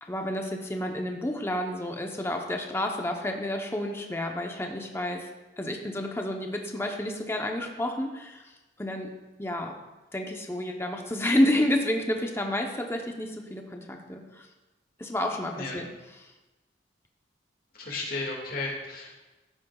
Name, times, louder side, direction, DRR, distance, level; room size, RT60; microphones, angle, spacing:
voice 1, 0.0-5.3 5.6-8.4 8.8-9.1 9.4-9.7 10.1-14.5 15.0-15.9 16.2-16.3, left 1 dB, 15° left, 2 dB, 0.8 m, -30 dB
voice 2, 17.7-19.2, left 3 dB, 55° left, 0 dB, 2.0 m, -34 dB
12.5 x 9.2 x 2.3 m, 1.1 s
head